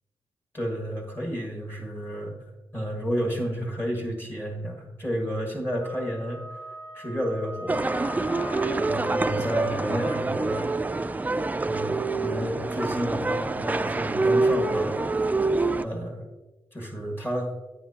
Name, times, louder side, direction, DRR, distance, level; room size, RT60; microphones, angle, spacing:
voice 1, 0.5-2.4 2.7-6.4 6.9-7.9 8.8-10.7 11.6-15.1 15.8-16.2 16.7-17.5, equal, 25° left, 1 dB, 1.8 m, -31 dB
Wind instrument woodwind instrument, 5.8-10.6, left 1 dB, 55° left, 2.2 m, -41 dB
sound 1, 7.7-15.9, right 3 dB, 15° right, 0.3 m, -26 dB
9.2 x 8.9 x 2.9 m, 1.1 s
cardioid pair, 80°, 10 cm